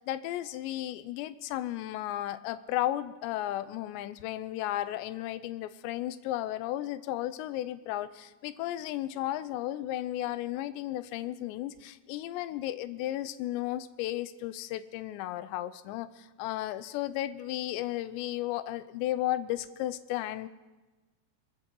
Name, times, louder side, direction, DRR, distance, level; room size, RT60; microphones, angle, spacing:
voice 1, 0.0-20.5, left 14 dB, 80° left, 14 dB, 2.7 m, -34 dB
23.5 x 14.0 x 3.8 m, 1.2 s
omnidirectional pair, 5.2 m